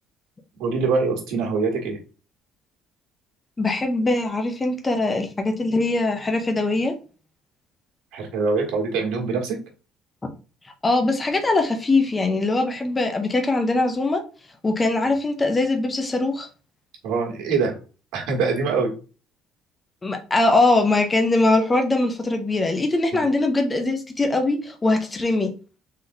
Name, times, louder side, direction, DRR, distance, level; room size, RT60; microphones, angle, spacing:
voice 1, 0.6-2.0 8.1-9.6 17.0-17.8 18.1-18.9, right 4 dB, 85° right, 0 dB, 1.4 m, -23 dB
voice 2, 3.6-6.9 10.8-14.2 14.6-16.5 20.0-25.5, left 2 dB, 15° left, 4 dB, 0.4 m, -21 dB
3.7 x 3.4 x 2.6 m, 0.34 s
cardioid pair, 170°, 0 cm